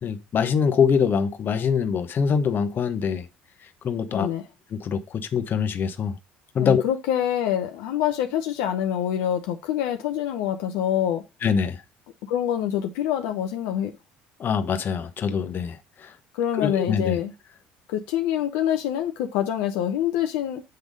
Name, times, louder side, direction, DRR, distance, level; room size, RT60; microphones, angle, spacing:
voice 1, 0.0-3.2 3.8-4.3 4.7-6.1 6.5-6.8 11.4-11.8 14.4-15.8 16.6-17.2, left 6 dB, 45° left, 1.0 m, -23 dB
voice 2, 4.1-4.5 6.6-11.2 12.3-13.9 16.3-17.3 17.9-20.6, left 10 dB, 75° left, 0.7 m, -26 dB
7.9 x 3.5 x 5.1 m
hypercardioid pair, 65°, 5 cm